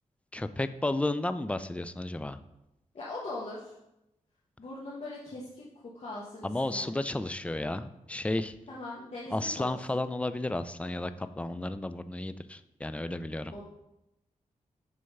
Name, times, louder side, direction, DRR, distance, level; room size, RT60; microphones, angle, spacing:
voice 1, 0.3-2.4 6.4-8.6 9.3-13.5, left 2 dB, 10° left, 12 dB, 0.3 m, -33 dB
voice 2, 2.9-3.7 4.6-6.9 8.7-9.7 13.5-13.7, left 2 dB, 55° left, -6 dB, 1.1 m, -41 dB
6.4 x 3.5 x 5.4 m, 0.89 s
cardioid pair, 75°, 13 cm